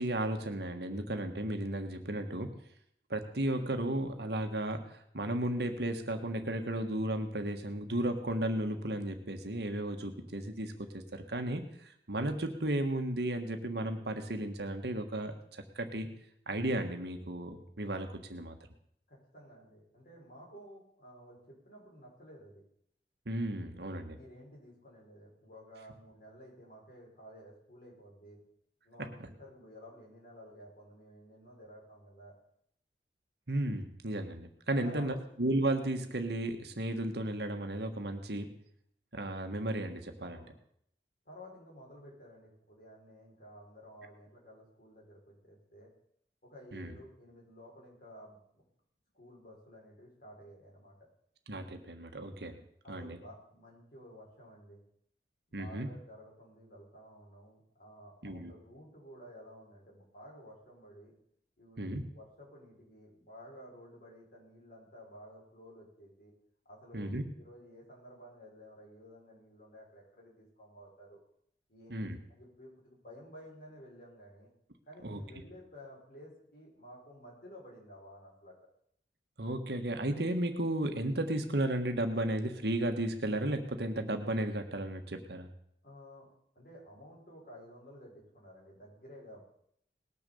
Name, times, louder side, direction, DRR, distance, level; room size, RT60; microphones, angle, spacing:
voice 1, 0.0-2.5 3.1-16.1 16.5-18.6 23.2-24.2 33.5-38.6 39.1-40.4 46.7-46.9 51.5-52.6 52.9-53.2 55.5-55.9 58.2-58.5 61.8-62.0 66.9-67.2 71.9-72.2 75.0-75.2 79.4-85.5, right 1 dB, 65° right, 6 dB, 1.6 m, -34 dB
voice 2, 19.1-22.6 24.1-28.4 28.8-32.3 34.7-35.2 40.3-40.5 41.3-45.9 46.4-48.6 49.1-50.9 52.8-54.8 55.5-61.1 61.6-66.3 66.7-71.2 71.7-74.5 74.9-78.7 85.8-86.3 86.5-89.4, equal, 50° left, -3 dB, 5.7 m, -53 dB
19.5 x 7.0 x 7.1 m, 0.70 s
head